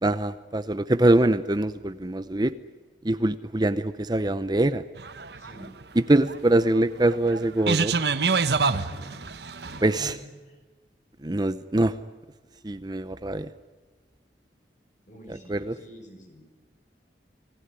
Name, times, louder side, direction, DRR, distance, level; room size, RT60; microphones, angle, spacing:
voice 1, 0.0-2.5 3.0-4.8 5.9-7.9 9.8-10.2 11.2-11.9 12.6-13.5 15.3-15.8, right 1 dB, 25° right, 12 dB, 0.8 m, -23 dB
sound 1, 5.0-10.0, right 4 dB, 65° right, 1.1 m, -27 dB
voice 2, 5.4-5.7 8.6-9.2 9.6-10.1 15.1-16.4, left 1 dB, 45° left, 5 dB, 6.7 m, -45 dB
27.5 x 19.5 x 9.9 m, 1.3 s
head